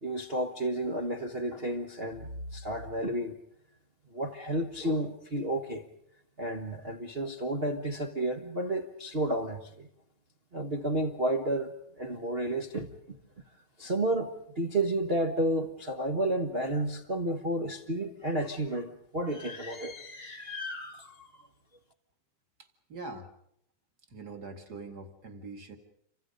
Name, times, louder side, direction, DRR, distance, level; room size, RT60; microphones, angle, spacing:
voice 1, 0.0-3.3 4.1-5.8 6.4-9.9 10.5-12.9 13.8-21.3, right 1 dB, 85° right, 0.5 m, -31 dB
voice 2, 22.6-23.3 24.1-25.8, right 3 dB, 35° right, 2.2 m, -43 dB
28.5 x 25.0 x 5.3 m
omnidirectional pair, 3.7 m